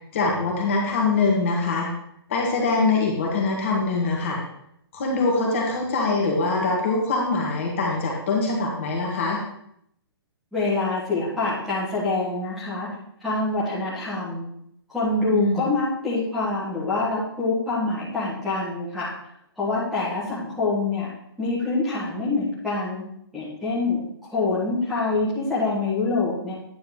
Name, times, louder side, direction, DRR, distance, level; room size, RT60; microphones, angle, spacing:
voice 1, 0.1-1.9 2.3-4.4 4.9-9.4 15.3-15.7, left 3 dB, 30° left, -2 dB, 1.6 m, -23 dB
voice 2, 10.5-12.9 13.2-14.5 14.9-19.1 19.6-21.1 21.4-23.1 23.3-26.5, left 3 dB, ahead, -10 dB, 1.4 m, -25 dB
9.3 x 4.2 x 5.5 m, 0.72 s
hypercardioid pair, 180°, 14 cm